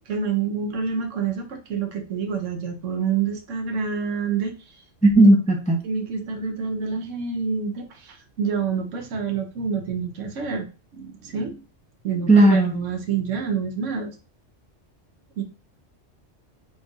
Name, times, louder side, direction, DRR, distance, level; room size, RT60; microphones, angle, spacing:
voice 1, 0.0-4.5 5.1-5.3 5.8-10.7 10.9-11.6 12.0-14.1 15.4-15.5, right 6 dB, 85° right, 4 dB, 1.1 m, -27 dB
voice 2, 5.0-5.8 12.3-12.7, right 2 dB, 10° left, 1 dB, 0.4 m, -15 dB
4.3 x 3.3 x 2.4 m, 0.34 s
omnidirectional pair, 1.3 m